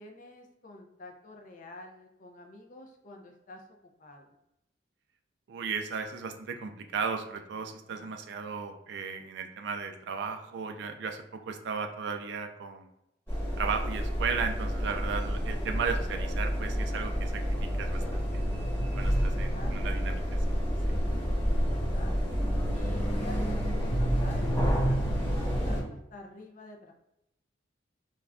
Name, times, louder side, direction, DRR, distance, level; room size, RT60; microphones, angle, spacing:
voice 1, 0.0-3.6 4.0-4.3 19.5-19.9 21.5-22.1 22.7-26.9, left 2 dB, 40° left, 3 dB, 0.4 m, -48 dB
voice 2, 5.5-12.9 13.6-18.4 19.0-20.4, right 5 dB, 60° right, 6 dB, 0.3 m, -35 dB
sound 1, 13.3-25.8, equal, 10° left, 1.2 m, -29 dB
2.4 x 2.2 x 3.4 m, 0.85 s
head